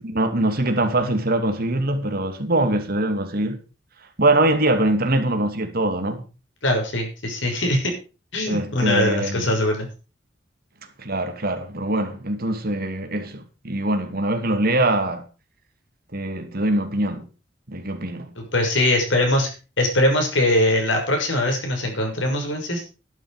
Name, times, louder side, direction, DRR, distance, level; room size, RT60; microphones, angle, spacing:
voice 1, 0.1-3.6 4.2-6.2 8.5-9.5 11.0-15.3 16.1-17.3 17.7-18.3, right 1 dB, 55° right, 2.6 m, -23 dB
voice 2, 6.6-7.9 8.3-9.9 18.4-19.5 19.8-22.8, left 1 dB, 85° left, 6.3 m, -21 dB
13.0 x 11.0 x 5.1 m
head